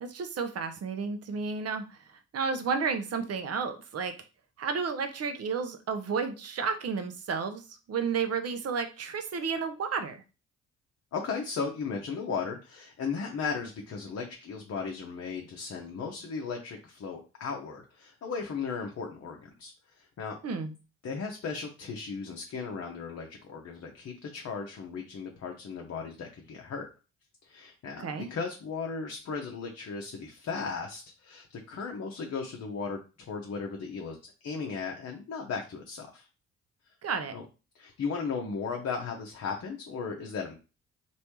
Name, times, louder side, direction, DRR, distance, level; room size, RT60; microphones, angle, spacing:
voice 1, 0.0-2.0 2.3-4.1 4.6-10.2 20.4-20.7 28.0-28.3 37.0-37.3, right 5 dB, 40° right, 8 dB, 0.7 m, -32 dB
voice 2, 11.1-20.4 21.0-26.9 27.4-36.3 37.3-37.4 37.7-40.6, left 5 dB, 45° left, 2 dB, 0.8 m, -36 dB
3.2 x 2.7 x 3.0 m, 0.32 s
hypercardioid pair, 40°, 37 cm